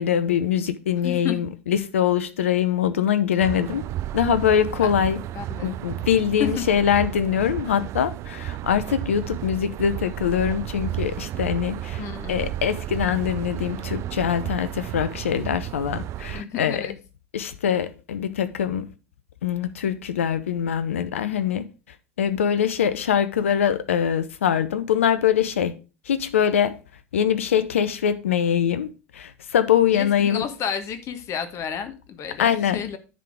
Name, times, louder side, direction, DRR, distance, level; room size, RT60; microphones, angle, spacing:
voice 1, 0.0-3.8 4.1-5.2 5.6-12.0 12.3-16.8 17.3-18.9 19.4-21.6 22.2-25.7 26.1-26.8 27.1-30.4 32.4-32.8, left 9 dB, 80° left, 0.7 m, -23 dB
voice 2, 1.0-1.3 4.8-4.9 5.3-5.7 6.4-6.6 12.0-12.5 16.3-17.0 29.9-33.0, left 8 dB, 45° left, 1.3 m, -31 dB
sound 1, 3.4-16.4, right 14 dB, 40° right, 0.3 m, -32 dB
10.0 x 3.9 x 5.0 m
hypercardioid pair, 80°, 7 cm